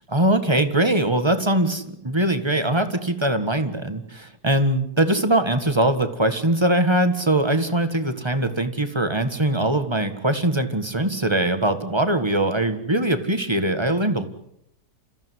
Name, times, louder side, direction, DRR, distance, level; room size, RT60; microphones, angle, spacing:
voice 1, 0.1-14.3, right 1 dB, 15° right, 8 dB, 1.7 m, -22 dB
28.0 x 15.5 x 9.5 m, 0.78 s
omnidirectional pair, 1.9 m